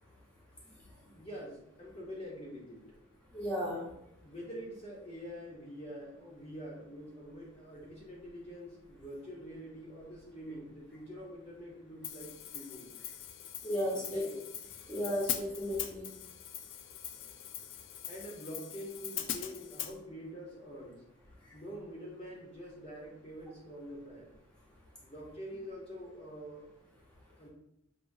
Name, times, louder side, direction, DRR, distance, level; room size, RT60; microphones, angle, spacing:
voice 1, 1.0-2.8 4.2-12.9 13.9-14.4 18.1-21.0 21.5-24.4 25.0-26.7 27.4-27.5, equal, 30° left, -4 dB, 1.0 m, -46 dB
voice 2, 3.3-3.9 13.6-14.2 14.9-16.1, equal, 5° left, -7 dB, 1.0 m, -34 dB
Hi-hat, 12.0-19.9, left 10 dB, 75° left, 0.3 m, -42 dB
5.9 x 2.8 x 2.7 m, 0.80 s
head